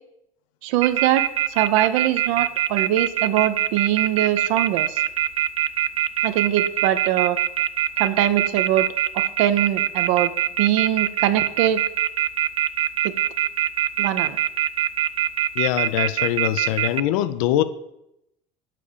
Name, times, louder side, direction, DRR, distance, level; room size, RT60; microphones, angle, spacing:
voice 1, 0.6-5.0 6.2-7.4 8.0-8.9 9.1-10.3 10.6-11.8 13.0-13.1 14.0-14.4, right 12 dB, 80° right, 0.7 m, -22 dB
sound 1, 0.8-17.0, right 12 dB, 35° right, 0.3 m, -22 dB
voice 2, 15.6-17.6, left 13 dB, 90° left, 0.5 m, -23 dB
7.6 x 4.9 x 6.6 m
cardioid pair, 125°, 16 cm